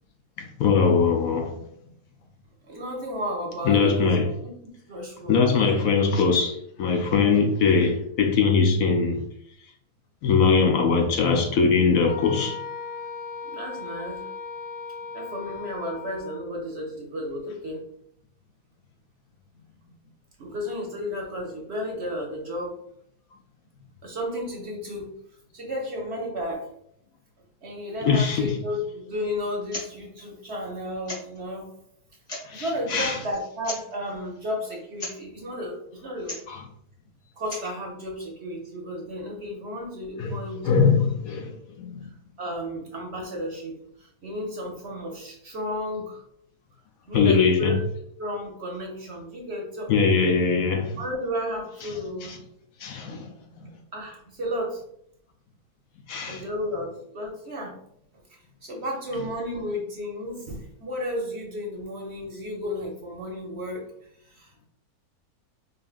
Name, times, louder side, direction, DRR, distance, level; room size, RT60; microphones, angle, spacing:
voice 1, 0.6-1.6 3.7-4.3 5.3-9.2 10.2-12.6 28.0-28.5 32.5-32.6 32.9-33.2 36.5-36.6 40.2-40.3 40.6-42.1 47.1-47.7 49.9-51.0 52.3-52.4 52.8-53.3 53.6-53.7 56.1-56.4, left 5 dB, 70° left, 1.0 m, -21 dB
voice 2, 2.7-4.2 4.9-5.8 13.4-14.3 15.1-17.9 20.4-22.8 24.0-25.1 25.5-26.7 27.6-31.7 32.5-36.4 37.2-40.9 42.0-42.1 42.4-46.2 47.1-47.8 48.2-49.9 51.0-52.4 53.9-54.8 56.2-57.8 58.3-63.9 64.2-64.7, equal, 50° right, 0.9 m, -33 dB
Wind instrument woodwind instrument, 12.1-16.4, left 5 dB, 55° left, 0.9 m, -37 dB
sound 1, 29.6-29.9 30.1-30.2 31.0-31.4 32.1-32.6 33.6-33.9 34.9-35.2 36.2-36.5 37.3-37.8, left 1 dB, 30° left, 1.4 m, -36 dB
5.3 x 2.5 x 2.4 m
omnidirectional pair, 1.6 m